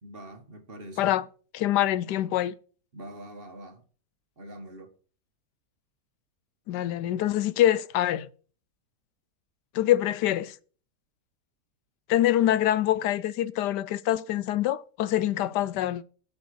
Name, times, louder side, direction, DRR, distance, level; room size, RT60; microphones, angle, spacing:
voice 1, 0.0-1.1 2.9-3.8 4.4-4.9, right 1 dB, 35° right, 1.5 m, -44 dB
voice 2, 1.5-2.5 6.7-8.3 9.7-10.5 12.1-16.0, left 13 dB, 85° left, 1.2 m, -25 dB
8.6 x 7.1 x 6.4 m
omnidirectional pair, 1.8 m